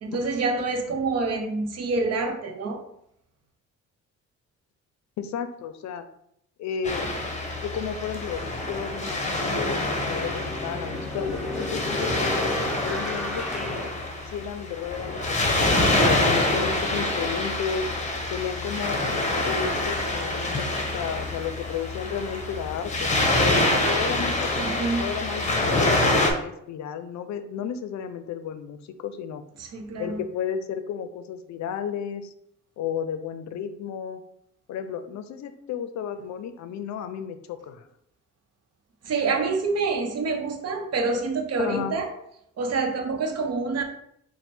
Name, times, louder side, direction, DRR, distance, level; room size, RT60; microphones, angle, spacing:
voice 1, 0.0-2.8 24.6-25.1 29.6-30.2 39.0-42.1 42.6-43.8, right 3 dB, 55° right, 4 dB, 0.8 m, -27 dB
voice 2, 5.2-6.1 6.6-7.1 7.6-12.5 12.8-13.9 14.3-17.9 18.3-19.0 19.4-23.2 23.8-29.4 30.0-32.3 32.8-34.2 34.7-37.9 41.6-42.0, left 7 dB, 70° left, 10 dB, 0.5 m, -33 dB
Waves surf, 6.8-26.3, left 2 dB, 25° left, 0.9 m, -26 dB
sound 1, 9.6-14.8, left 1 dB, ahead, 0.8 m, -34 dB
4.3 x 2.2 x 4.3 m, 0.73 s
cardioid pair, 90°, 30 cm